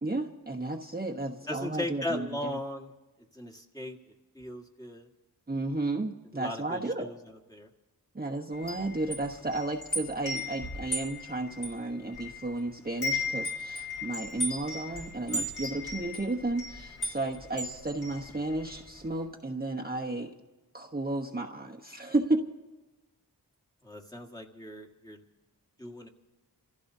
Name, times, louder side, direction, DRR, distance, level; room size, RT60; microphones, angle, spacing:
voice 1, 0.0-2.6 5.5-7.1 8.1-20.3 20.7-22.4, right 2 dB, 25° right, 0 dB, 1.0 m, -33 dB
voice 2, 1.5-2.9 3.3-4.0 4.3-5.1 6.3-7.2 7.5-7.7 15.3-15.5 23.8-25.2 25.8-26.1, left 1 dB, 10° left, -1 dB, 1.7 m, -37 dB
Wind chime, 8.5-12.6 12.9-18.8, left 1 dB, 70° left, 4.2 m, -36 dB
29.0 x 15.5 x 2.7 m, 1.1 s
cardioid pair, 40°, 39 cm